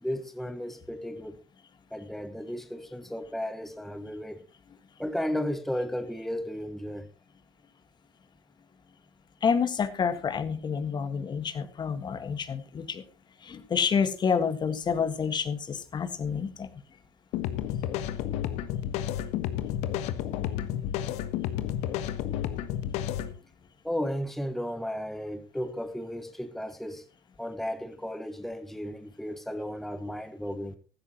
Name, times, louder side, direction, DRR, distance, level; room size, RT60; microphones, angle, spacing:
voice 1, 0.0-1.4 1.9-4.4 5.0-7.1 23.8-27.0 27.4-30.8, equal, ahead, 1.1 m, -34 dB
voice 2, 9.4-13.0 13.4-16.7, left 6 dB, 35° left, 1.7 m, -28 dB
sound 1, 17.3-23.3, left 11 dB, 60° left, 1.3 m, -31 dB
15.5 x 13.5 x 3.0 m
figure-of-eight pair, 65°, 13 cm